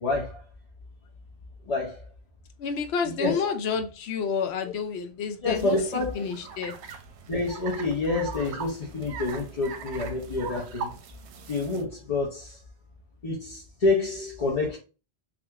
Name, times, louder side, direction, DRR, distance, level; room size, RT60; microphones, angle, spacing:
voice 1, 0.0-0.4 1.6-2.1 3.2-3.4 5.4-6.3 7.3-10.9 11.5-12.6 13.2-14.8, left 3 dB, 40° left, 0.7 m, -28 dB
voice 2, 2.6-6.8, left 6 dB, 75° left, 0.8 m, -30 dB
sound 1, 5.5-11.8, right 5 dB, 90° right, 0.9 m, -41 dB
3.3 x 2.5 x 2.8 m
omnidirectional pair, 1.1 m